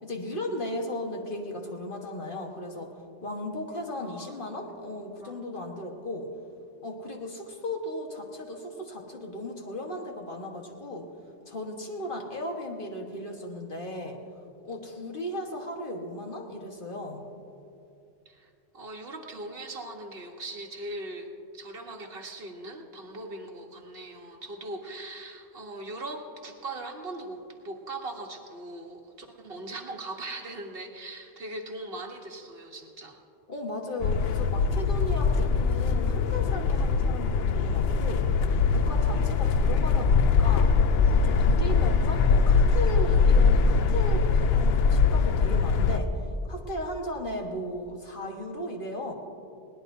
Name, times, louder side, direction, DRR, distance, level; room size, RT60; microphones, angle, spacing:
voice 1, 0.0-2.9 3.2-6.3 6.8-11.1 11.5-14.2 14.6-17.2 33.5-38.3 38.7-40.7 41.1-46.1 46.5-49.1, left 1 dB, 50° left, 1 dB, 1.6 m, -36 dB
voice 2, 4.0-4.4 5.1-5.4 18.2-21.3 21.5-33.2, right 2 dB, 55° right, 2 dB, 1.5 m, -40 dB
sound 1, 34.0-46.0, left 5 dB, 65° left, 0.8 m, -22 dB
21.0 x 18.0 x 2.7 m, 2.7 s
omnidirectional pair, 1.2 m